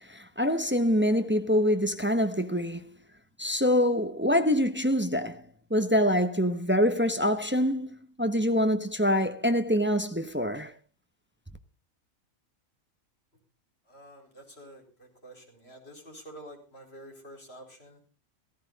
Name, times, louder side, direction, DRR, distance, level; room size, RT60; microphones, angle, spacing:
voice 1, 0.1-2.8 3.4-5.4 5.7-7.9 8.2-10.7, equal, 10° right, 0.9 m, -25 dB
voice 2, 13.9-18.0, right 1 dB, 50° left, 4.9 m, -48 dB
16.0 x 14.5 x 4.0 m
omnidirectional pair, 1.4 m